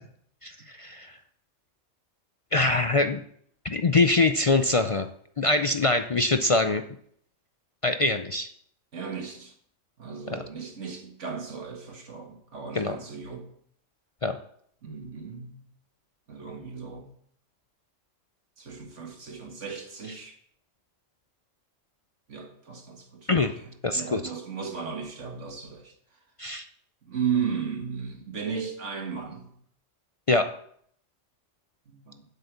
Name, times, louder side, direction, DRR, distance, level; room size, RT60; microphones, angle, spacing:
voice 1, 0.4-1.2 2.5-3.2 3.6-5.1 5.4-6.8 7.8-8.5 10.3-10.4 12.7-13.0 14.2-14.4 23.3-23.5 23.8-24.2 26.4-26.7 30.3-30.5, left 3 dB, 55° left, 8 dB, 0.3 m, -24 dB
voice 2, 8.9-9.5 10.0-13.5 14.8-15.6 16.3-17.1 18.6-20.4 22.3-25.9 27.1-29.5 31.9-32.3, right 6 dB, 65° right, 3 dB, 1.9 m, -35 dB
8.1 x 6.8 x 8.1 m, 0.66 s
omnidirectional pair, 1.3 m